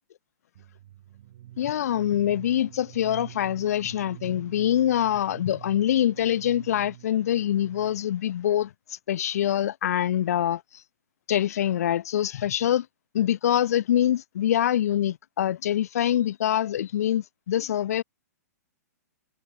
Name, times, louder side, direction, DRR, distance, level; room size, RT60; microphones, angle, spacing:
sound 1, 0.5-8.2, right 13 dB, 55° right, 2.5 m, -46 dB
voice 1, 1.6-10.6 11.3-12.8 13.1-18.0, left 11 dB, 65° left, 0.8 m, -25 dB
hypercardioid pair, 125°, 9 cm